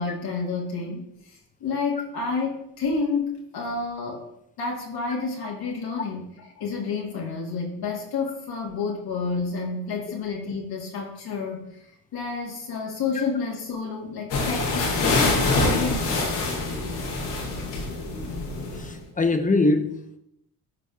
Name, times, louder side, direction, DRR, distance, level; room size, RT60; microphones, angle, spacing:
voice 1, 0.0-4.2 4.6-16.3, left 4 dB, 55° left, -1 dB, 1.4 m, -30 dB
sound 1, 14.3-18.9, left 2 dB, 90° left, 1.9 m, -25 dB
voice 2, 18.8-20.2, left 2 dB, 15° left, 6 dB, 0.8 m, -22 dB
12.0 x 4.1 x 2.4 m, 0.79 s
supercardioid pair, 70°, 45 cm